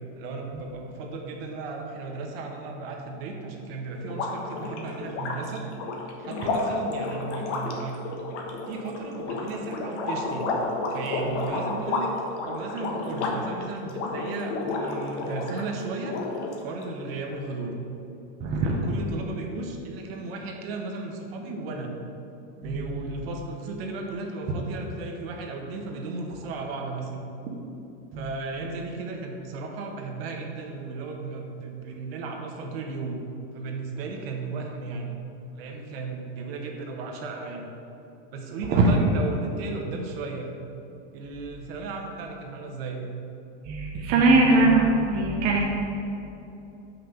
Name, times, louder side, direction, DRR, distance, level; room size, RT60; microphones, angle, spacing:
voice 1, 0.2-5.7 6.2-8.0 8.7-10.5 10.9-12.1 12.5-16.2 16.6-17.7 18.6-21.9 22.6-27.3 28.1-33.2 33.5-35.1 35.5-37.7 38.3-40.5 41.1-43.1, right 3 dB, 55° right, 2 dB, 1.2 m, -35 dB
sound 1, 4.0-15.6 16.0-16.8, left 3 dB, 70° left, 1.3 m, -31 dB
voice 2, 18.4-19.0 22.6-23.0 27.5-27.6 28.1-28.4 38.7-38.9 43.6-45.6, right 2 dB, 25° right, -2 dB, 0.6 m, -22 dB
6.0 x 5.3 x 6.7 m, 2.8 s
supercardioid pair, 175°, 36 cm